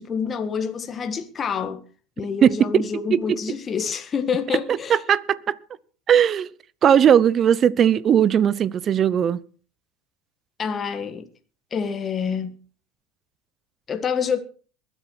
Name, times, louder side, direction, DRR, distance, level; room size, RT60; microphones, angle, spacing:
voice 1, 0.0-1.8 2.2-5.0 10.6-11.3 11.7-12.6 13.9-14.4, left 6 dB, 30° left, 1.5 m, -27 dB
voice 2, 4.9-5.6 6.1-6.5 6.8-9.4, right 9 dB, 35° right, 0.8 m, -18 dB
22.0 x 8.1 x 4.6 m
hypercardioid pair, 95°, 0 cm